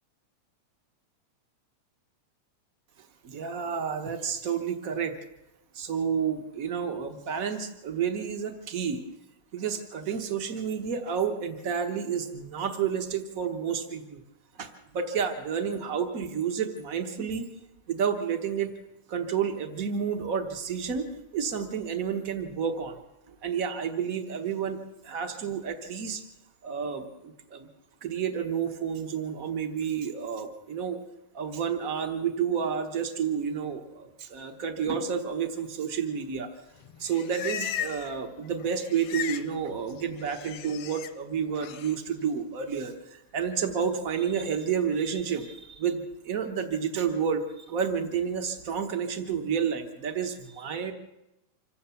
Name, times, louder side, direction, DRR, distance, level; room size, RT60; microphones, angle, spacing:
voice 1, 3.2-5.1 5.7-9.0 9.5-14.2 14.6-17.5 17.9-18.7 19.1-23.0 23.3-24.8 25.0-26.2 26.6-27.7 28.0-31.0 31.3-36.5 37.0-50.9, right 7 dB, 75° right, 6 dB, 0.7 m, -30 dB
Livestock farm animals working animals, 36.8-38.2 38.5-39.5 39.8-41.1 41.6-42.0, left 9 dB, 70° left, 1.5 m, -37 dB
26.0 x 16.0 x 7.0 m, 0.97 s
omnidirectional pair, 3.6 m